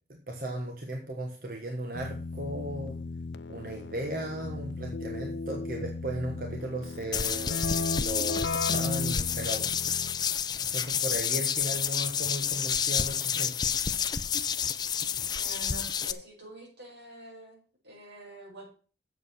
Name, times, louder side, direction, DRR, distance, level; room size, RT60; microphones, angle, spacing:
voice 1, 0.1-3.0 3.5-7.6 8.0-9.7 10.5-13.8, right 1 dB, 55° right, 1 dB, 1.4 m, -36 dB
Keyboard (musical), 2.0-10.4, left 3 dB, 90° left, 0.5 m, -36 dB
sound 1, 7.1-16.1, left 8 dB, 25° left, 0.4 m, -29 dB
voice 2, 15.3-18.7, right 1 dB, 85° right, -1 dB, 5.1 m, -46 dB
7.9 x 7.5 x 5.8 m, 0.39 s
head